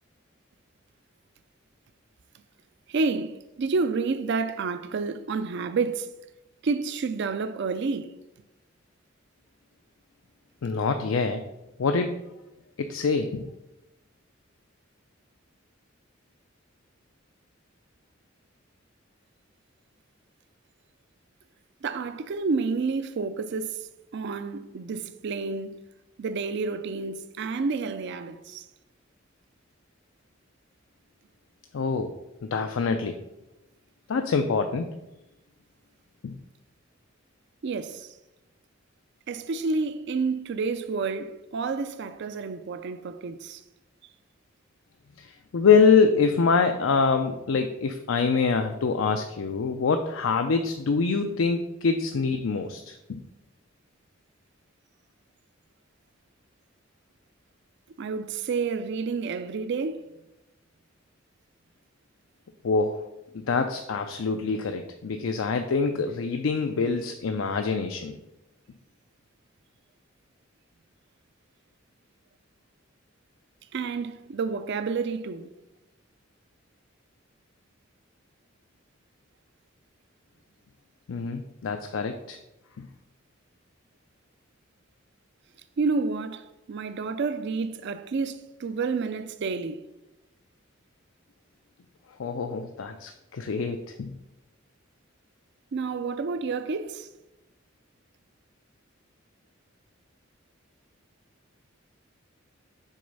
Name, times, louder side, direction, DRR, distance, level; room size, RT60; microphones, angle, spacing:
voice 1, 2.9-6.1 6.6-8.1 21.8-23.8 24.1-25.8 26.2-28.6 37.6-38.1 39.3-43.6 58.0-60.1 73.7-75.5 85.8-89.8 95.7-97.1, right 4 dB, 60° right, 0.4 m, -29 dB
voice 2, 10.6-11.4 11.8-12.2 12.8-13.5 31.7-32.1 32.5-33.2 34.1-34.9 36.2-36.4 45.2-53.2 62.6-63.1 63.3-68.2 81.1-82.4 92.2-94.1, left 5 dB, 75° left, 0.5 m, -25 dB
6.4 x 3.9 x 5.4 m
head